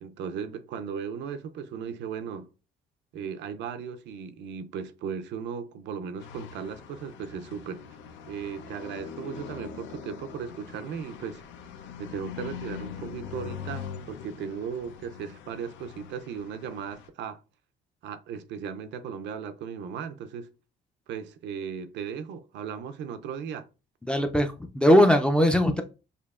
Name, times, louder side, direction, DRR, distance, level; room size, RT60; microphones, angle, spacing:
voice 1, 0.0-2.5 3.1-7.8 8.3-11.4 12.0-17.4 18.0-20.5 21.1-23.7, right 7 dB, 70° right, 0.5 m, -36 dB
sound 1, 6.2-17.1, left 7 dB, 85° left, 0.7 m, -42 dB
voice 2, 24.1-25.8, equal, 5° left, 0.4 m, -20 dB
6.7 x 2.7 x 2.4 m
cardioid pair, 135°, 19 cm